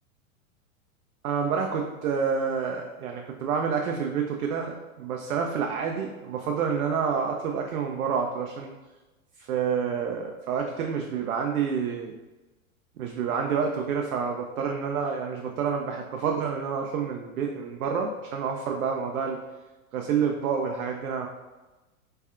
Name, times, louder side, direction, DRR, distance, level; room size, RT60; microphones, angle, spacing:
voice 1, 1.2-8.7 9.4-12.2 13.0-19.4 19.9-21.3, right 6 dB, 85° right, 2 dB, 0.5 m, -28 dB
3.3 x 2.3 x 3.5 m, 1.1 s
hypercardioid pair, 110°, 42 cm